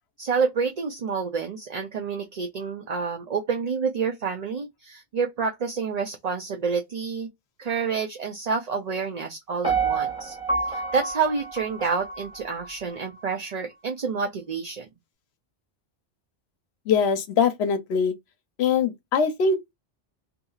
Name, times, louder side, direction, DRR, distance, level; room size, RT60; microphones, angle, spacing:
voice 1, 0.2-7.3 7.6-10.4 10.7-14.9, right 5 dB, 45° right, 0.6 m, -28 dB
Piano, 9.6-12.7 13.2-13.3, right 4 dB, 5° right, 1.3 m, -28 dB
voice 2, 16.9-18.1 18.6-19.7, left 6 dB, 70° left, 0.9 m, -22 dB
2.8 x 2.7 x 2.3 m
omnidirectional pair, 1.2 m